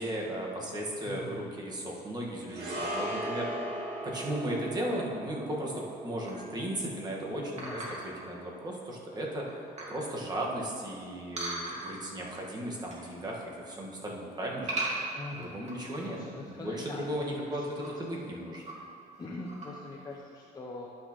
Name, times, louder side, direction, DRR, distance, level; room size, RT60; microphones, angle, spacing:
voice 1, 0.0-3.5 4.0-9.4 9.9-14.8 15.4-16.2 16.5-18.6, right 1 dB, 25° right, -2 dB, 1.5 m, -36 dB
voice 2, 1.1-1.4 7.6-7.8 15.1-17.9 19.2-20.9, left 2 dB, 25° left, -4 dB, 0.8 m, -43 dB
sound 1, 2.5-11.0 11.2-11.4, right 1 dB, 70° right, 1.4 m, -40 dB
sound 2, 6.3-6.6 7.6-8.2 8.8-8.9 9.3-10.0 11.4-12.2 12.6-13.1 13.4-13.8 14.7-16.2 16.6-16.7 16.9-17.0 17.6-17.9 18.5-19.0 19.4-19.7, right 2 dB, 40° right, 2.0 m, -38 dB
11.0 x 6.2 x 3.0 m, 2.4 s
cardioid pair, 110°, 17 cm